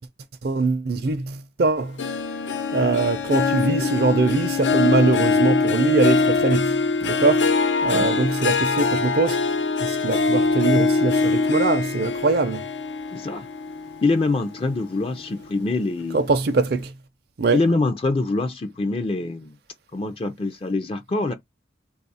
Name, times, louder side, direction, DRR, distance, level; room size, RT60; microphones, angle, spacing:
voice 1, 0.4-2.0 2.7-7.4 7.8-9.4 9.8-12.6 16.1-16.9 17.4-17.6, right 3 dB, 60° right, 0.5 m, -22 dB
Harp, 2.0-14.7 15.1-15.5 16.0-16.1, left 4 dB, 85° left, 0.6 m, -23 dB
voice 2, 13.1-13.5 14.0-16.3 17.5-19.6 19.9-21.3, left 3 dB, 30° left, 0.4 m, -24 dB
3.2 x 2.4 x 4.0 m
head